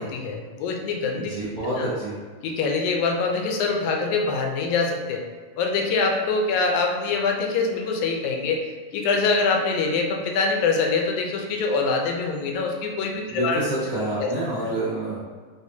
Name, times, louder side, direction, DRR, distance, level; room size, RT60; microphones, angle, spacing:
voice 1, 0.0-1.3 1.8-1.9 2.4-5.2 5.6-8.6 8.9-13.6 14.2-14.3, left 4 dB, 85° left, 1 dB, 2.0 m, -24 dB
voice 2, 1.1-2.2 13.3-15.2, right 1 dB, 50° right, -12 dB, 1.3 m, -28 dB
4.5 x 3.5 x 2.7 m, 1.5 s
omnidirectional pair, 3.3 m